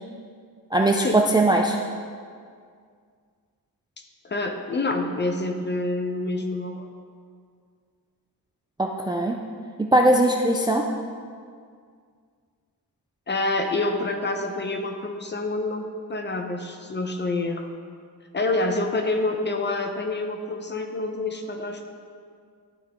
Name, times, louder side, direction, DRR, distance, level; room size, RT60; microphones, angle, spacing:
voice 1, 0.7-1.8 8.8-9.4 9.9-10.8, right 1 dB, 10° right, 2 dB, 0.3 m, -20 dB
voice 2, 4.2-6.9 13.3-17.7 18.3-21.8, left 2 dB, 30° left, 5 dB, 0.7 m, -27 dB
11.5 x 5.9 x 3.6 m, 2.1 s
wide cardioid pair, 135°, 38 cm